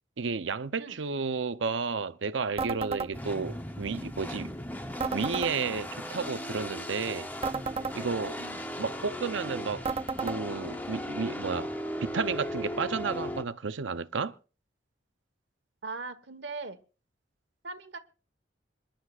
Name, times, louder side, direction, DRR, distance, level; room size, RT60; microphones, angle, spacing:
voice 1, 0.2-4.6 5.1-7.3 7.9-8.4 8.8-9.9 10.2-11.7 12.0-14.4, right 5 dB, 90° right, 0.7 m, -32 dB
sound 1, 2.6-3.1 5.0-5.5 7.4-8.0 9.8-10.4, right 4 dB, 30° right, 0.5 m, -32 dB
sound 2, 3.1-13.4, equal, 10° left, 0.8 m, -37 dB
voice 2, 8.2-8.7 15.8-16.8 17.6-18.0, right 3 dB, 70° right, 1.3 m, -40 dB
26.5 x 11.5 x 2.5 m
head